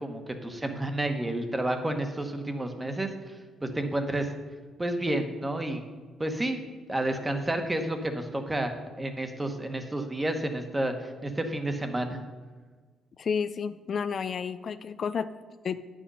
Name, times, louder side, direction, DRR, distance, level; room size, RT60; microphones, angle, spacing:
voice 1, 0.0-3.3 3.6-4.3 4.8-5.8 6.2-6.6 6.9-8.7 9.0-12.2, right 1 dB, 15° right, 6 dB, 1.2 m, -30 dB
voice 2, 13.2-15.3 15.6-15.8, left 6 dB, 50° left, 12 dB, 0.4 m, -31 dB
9.1 x 6.3 x 5.5 m, 1.4 s
cardioid pair, 90°, 0 cm